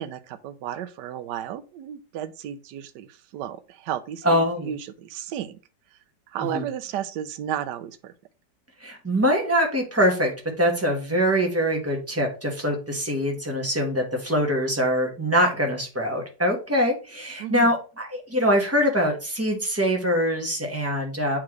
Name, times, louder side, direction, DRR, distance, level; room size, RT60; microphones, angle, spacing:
voice 1, 0.0-5.6 5.9-6.0 6.3-8.1 17.4-17.7, right 10 dB, 75° right, 1.2 m, -33 dB
voice 2, 4.2-4.7 6.5-6.6 8.8-21.4, equal, 10° right, 1.1 m, -23 dB
8.7 x 3.7 x 3.2 m
omnidirectional pair, 2.0 m